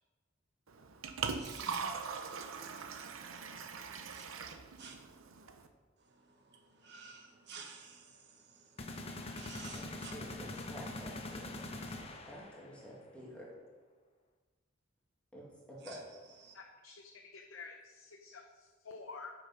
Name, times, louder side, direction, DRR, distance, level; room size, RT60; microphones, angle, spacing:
Liquid, 0.7-5.7, right 5 dB, 85° right, 0.7 m, -41 dB
voice 1, 1.2-2.4 3.0-3.1 4.0-4.3 4.8-5.0 6.1-8.7 9.3-10.1 15.8-16.5, right 5 dB, 55° right, 2 dB, 1.5 m, -53 dB
sound 1, 8.8-12.7, left 2 dB, 30° left, 0.8 m, -43 dB
voice 2, 9.7-11.5 12.0-13.5 15.3-15.4 15.7-16.0, equal, 5° left, -5 dB, 2.1 m, -50 dB
voice 3, 16.5-19.3, left 4 dB, 75° left, 3 dB, 0.7 m, -50 dB
8.8 x 5.9 x 5.5 m, 1.3 s
head